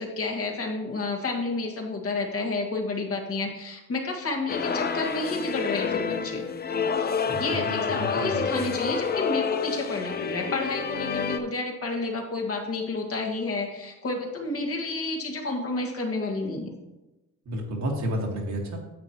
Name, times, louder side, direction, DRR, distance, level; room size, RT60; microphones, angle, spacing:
voice 1, 0.0-6.5 7.4-16.8, left 3 dB, 50° left, 1 dB, 1.8 m, -30 dB
sound 1, 4.5-11.4, left 6 dB, 35° left, 0.6 m, -28 dB
voice 2, 7.2-8.7 17.5-18.8, equal, 60° right, 0 dB, 1.9 m, -31 dB
9.4 x 7.8 x 3.0 m, 1.0 s
cardioid pair, 90°, 30 cm